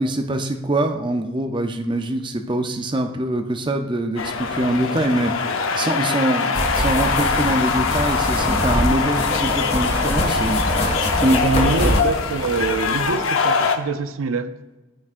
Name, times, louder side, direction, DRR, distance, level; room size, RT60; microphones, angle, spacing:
voice 1, 0.0-11.4, right 1 dB, 25° right, 5 dB, 0.5 m, -24 dB
sound 1, 4.2-13.8, left 5 dB, 80° left, 0.7 m, -23 dB
sound 2, 6.5-13.1, left 1 dB, 30° left, 1.8 m, -24 dB
voice 2, 11.2-14.5, right 4 dB, 85° right, 11 dB, 0.5 m, -25 dB
13.5 x 6.0 x 2.5 m, 1.1 s
head